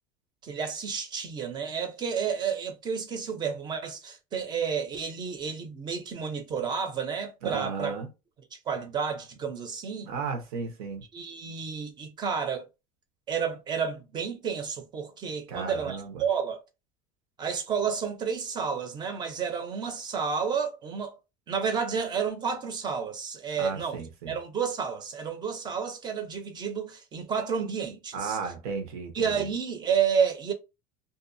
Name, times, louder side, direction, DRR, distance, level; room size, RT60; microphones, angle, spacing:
voice 1, 0.4-8.0 8.7-10.1 11.1-12.7 13.3-16.6 17.4-21.2 21.5-24.0 24.3-28.4 29.1-30.5, right 6 dB, 25° right, 0.5 m, -31 dB
voice 2, 7.4-8.1 10.1-11.0 15.5-16.1 23.6-24.4 28.1-29.3, right 5 dB, 90° right, 1.0 m, -34 dB
2.6 x 2.3 x 2.6 m
cardioid pair, 155°, 18 cm